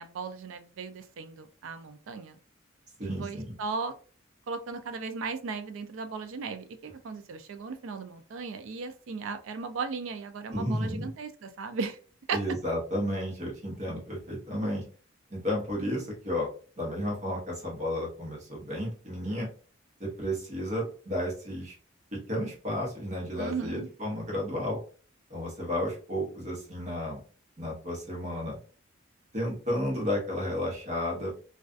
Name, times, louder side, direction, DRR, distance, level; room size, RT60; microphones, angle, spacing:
voice 1, 0.0-2.4 3.0-3.9 4.5-12.0 12.3-12.4 23.4-23.9, right 4 dB, 70° right, 9 dB, 0.4 m, -36 dB
voice 2, 3.0-3.6 10.5-11.1 12.3-14.8 15.3-16.5 16.8-19.5 20.0-21.7 22.1-24.8 25.3-27.2 27.6-28.6 29.3-31.3, equal, 35° right, -2 dB, 1.0 m, -32 dB
2.3 x 2.3 x 2.3 m, 0.39 s
head